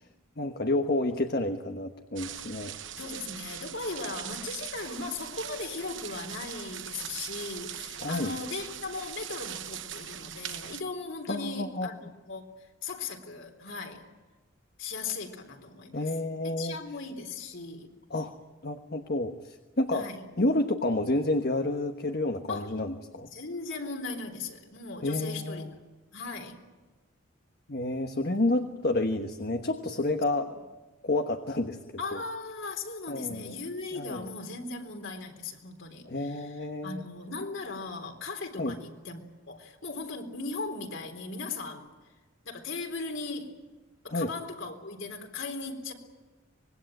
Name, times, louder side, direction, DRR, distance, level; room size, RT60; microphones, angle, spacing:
voice 1, 0.4-2.7 8.0-8.3 11.3-11.9 15.9-16.7 18.1-18.4 18.6-20.1 20.4-23.3 25.0-25.7 27.7-30.5 31.0-31.8 32.1-32.2 33.1-33.5 33.9-34.3 36.0-37.0 38.6-38.7 44.1-44.3, left 2 dB, 50° left, 6 dB, 1.2 m, -29 dB
sound 1, 2.2-10.8, right 10 dB, 60° right, 1.0 m, -41 dB
voice 2, 3.0-12.0 12.3-14.1 14.8-16.1 16.4-17.9 19.9-20.2 22.5-22.8 23.3-25.7 26.1-26.6 30.4-30.5 32.0-39.2 39.5-41.9 42.4-43.6 44.0-45.9, left 3 dB, 65° left, 4 dB, 3.9 m, -38 dB
25.0 x 21.5 x 9.1 m, 1.2 s
head